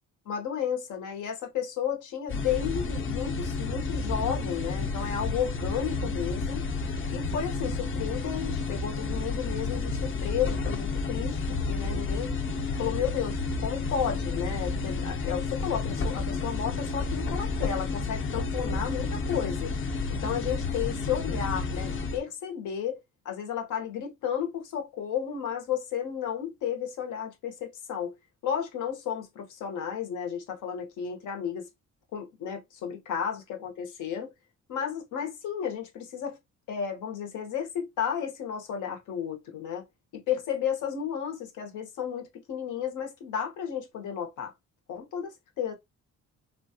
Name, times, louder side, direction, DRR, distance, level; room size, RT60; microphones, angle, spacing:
voice 1, 0.2-6.6 7.1-12.3 12.8-19.7 20.1-23.0 23.2-28.1 28.4-31.7 32.1-34.3 34.7-36.4 36.7-39.8 40.1-44.5 44.9-45.7, left 8 dB, 85° left, 1.0 m, -33 dB
sound 1, 2.3-22.2, left 3 dB, 45° left, 0.7 m, -31 dB
3.0 x 2.3 x 2.8 m
cardioid pair, 90°, 30 cm